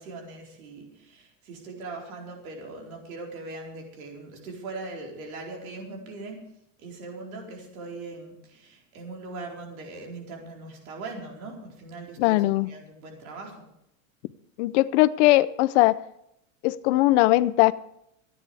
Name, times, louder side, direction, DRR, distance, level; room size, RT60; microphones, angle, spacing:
voice 1, 0.0-13.7, right 3 dB, 85° right, 0 dB, 4.6 m, -40 dB
voice 2, 12.2-12.7 14.6-16.0 16.6-17.7, left 18 dB, 60° left, 16 dB, 0.7 m, -20 dB
27.0 x 9.9 x 3.5 m, 0.77 s
supercardioid pair, 145°, 41 cm